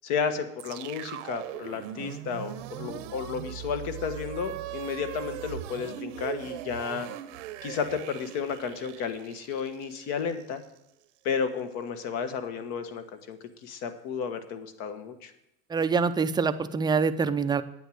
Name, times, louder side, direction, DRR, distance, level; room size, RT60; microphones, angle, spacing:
voice 1, 0.0-7.1 7.6-10.6 11.2-15.3, left 6 dB, 65° left, 9 dB, 1.5 m, -32 dB
sound 1, 0.6-10.8, right 12 dB, 85° right, 0.9 m, -40 dB
voice 2, 15.7-17.6, right 5 dB, 10° right, 11 dB, 0.4 m, -25 dB
9.2 x 9.1 x 6.4 m, 0.84 s
supercardioid pair, 125°, 36 cm